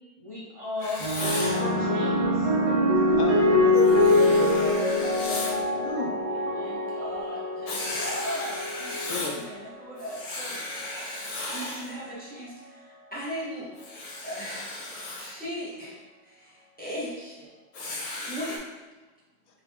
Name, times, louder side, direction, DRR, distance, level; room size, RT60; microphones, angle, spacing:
voice 1, 0.2-2.5, left 2 dB, 30° right, -8 dB, 0.6 m, -36 dB
Writing, 0.8-1.6 3.8-5.6 7.7-9.4 10.0-11.9 13.8-15.3 17.7-18.6, left 2 dB, 85° left, 1.4 m, -35 dB
sound 1, 1.0-9.6 10.5-10.9, left 1 dB, 45° right, 1.1 m, -24 dB
voice 2, 3.2-4.9 5.8-6.1 9.1-9.4, left 4 dB, 70° left, 2 dB, 0.9 m, -34 dB
voice 3, 5.7-10.6 10.9-11.0 11.5-13.7 14.2-17.5 18.1-18.6, equal, 5° left, -9 dB, 0.7 m, -39 dB
3.8 x 2.7 x 3.4 m, 1.2 s
omnidirectional pair, 1.9 m